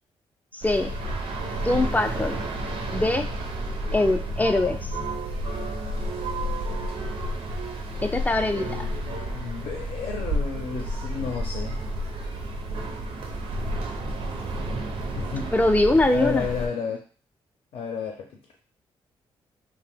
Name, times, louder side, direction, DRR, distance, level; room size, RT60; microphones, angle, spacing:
voice 1, 0.5-0.9 1.6-2.4 2.9-3.3 3.9-5.3 8.0-8.9 15.5-16.5, left 2 dB, 15° left, 7 dB, 0.4 m, -23 dB
sound 1, 0.6-16.7, right 1 dB, 65° right, 0.6 m, -31 dB
voice 2, 8.6-11.8 15.1-15.5 16.1-17.0 17.7-18.3, left 5 dB, 70° left, 1 dB, 0.6 m, -32 dB
2.8 x 2.0 x 3.4 m, 0.38 s
cardioid pair, 65°, 10 cm